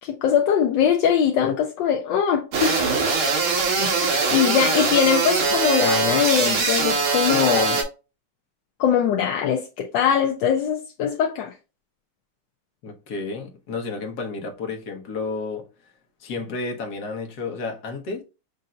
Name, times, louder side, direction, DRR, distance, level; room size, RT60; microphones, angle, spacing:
voice 1, 0.0-2.8 4.3-7.8 8.8-11.5, left 8 dB, 75° left, 1.1 m, -21 dB
sound 1, 2.5-7.8, right 4 dB, 75° right, 2.1 m, -22 dB
voice 2, 3.6-4.3 12.8-15.7 16.2-18.2, left 3 dB, 55° left, 1.3 m, -32 dB
6.5 x 2.7 x 2.4 m
omnidirectional pair, 2.4 m